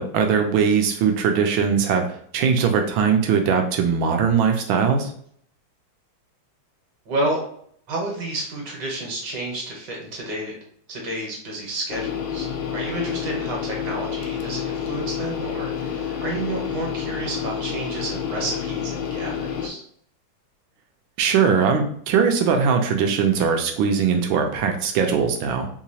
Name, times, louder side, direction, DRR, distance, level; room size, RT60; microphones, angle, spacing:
voice 1, 0.0-2.1 2.3-5.1 21.2-25.7, right 6 dB, 75° right, 4 dB, 1.4 m, -20 dB
voice 2, 7.1-7.4 7.9-10.5 10.9-19.8, right 2 dB, 60° right, -1 dB, 1.6 m, -30 dB
sound 1, 11.9-19.7, left 8 dB, 85° left, 1.4 m, -29 dB
3.7 x 2.9 x 2.8 m, 0.63 s
omnidirectional pair, 2.3 m